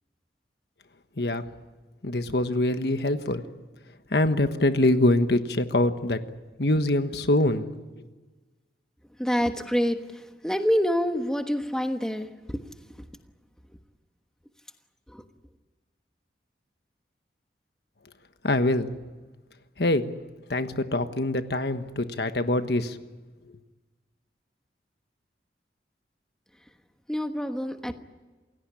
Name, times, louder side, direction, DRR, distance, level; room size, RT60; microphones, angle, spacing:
voice 1, 2.0-3.4 4.1-6.2 6.6-7.7 18.4-18.9 19.8-20.2 20.5-23.0, left 1 dB, 65° left, 9 dB, 1.4 m, -24 dB
voice 2, 9.2-12.6 15.1-15.2 27.1-27.9, equal, 5° left, 6 dB, 1.2 m, -27 dB
28.5 x 17.0 x 9.9 m, 1.3 s
head